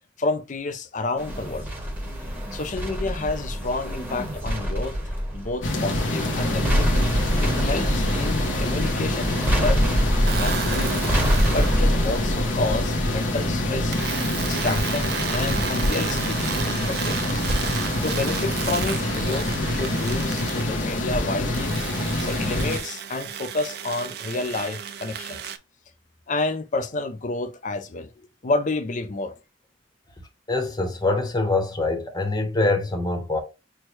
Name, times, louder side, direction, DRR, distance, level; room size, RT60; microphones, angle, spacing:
voice 1, 0.2-1.7 2.5-5.0 5.3-6.9 7.4-10.0 10.4-11.1 11.5-14.0 14.4-16.4 16.7-17.4 18.0-21.7 22.2-25.5 26.3-29.3, left 3 dB, 40° left, 0.5 m, -30 dB
sound 1, 1.2-16.7 17.0-17.1, equal, 10° right, 1.2 m, -26 dB
sound 2, 5.6-22.8, left 1 dB, 90° left, 0.9 m, -26 dB
sound 3, 10.3-11.8 13.9-20.7 21.5-25.6, right 8 dB, 55° right, 0.4 m, -33 dB
voice 2, 30.5-33.4, left 2 dB, 20° left, 0.9 m, -24 dB
6.1 x 2.2 x 3.2 m
head